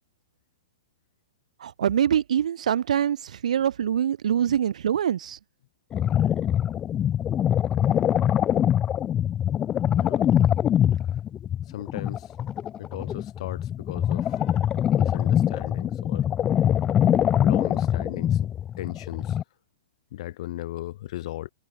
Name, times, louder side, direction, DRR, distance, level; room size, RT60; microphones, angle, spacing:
voice 1, 1.6-3.2 3.4-5.4, right 9 dB, 80° right, 1.3 m, -24 dB
sound 1, 5.9-19.4, left 10 dB, 20° left, 1.6 m, -23 dB
voice 2, 10.0-10.3 11.7-12.3 12.8-16.3 17.4-18.5 18.8-19.4 20.1-21.5, left 15 dB, 55° left, 1.9 m, -37 dB
hypercardioid pair, 140°, 4 cm